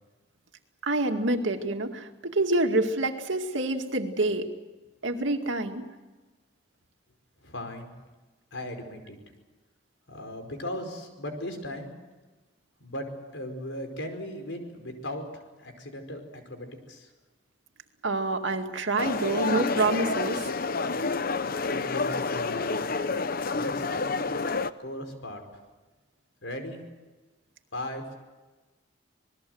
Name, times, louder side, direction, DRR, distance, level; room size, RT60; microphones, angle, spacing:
voice 1, 0.8-4.5 5.0-5.9 18.0-20.5, right 2 dB, 85° right, 5 dB, 2.2 m, -27 dB
voice 2, 7.4-7.9 8.5-9.2 10.1-11.9 12.8-13.1 13.3-17.1 21.7-22.8 23.5-24.3 24.8-25.4 26.4-26.8 27.7-28.2, left 1 dB, 85° left, 5 dB, 4.9 m, -37 dB
sound 1, 19.0-24.7, left 4 dB, 50° left, 0.8 m, -29 dB
27.0 x 20.5 x 7.9 m, 1.2 s
head